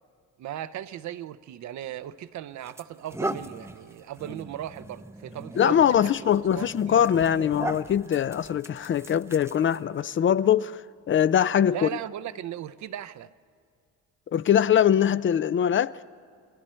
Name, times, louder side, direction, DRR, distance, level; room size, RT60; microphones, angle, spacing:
voice 1, 0.4-6.7 11.7-13.3, right 11 dB, 70° right, 0.7 m, -37 dB
sound 1, 1.8-2.0 2.6-10.0, right 1 dB, 10° right, 0.7 m, -38 dB
voice 2, 5.6-11.9 14.3-16.0, left 9 dB, 40° left, 0.4 m, -22 dB
29.0 x 21.0 x 4.4 m
cardioid pair, 90°, 30 cm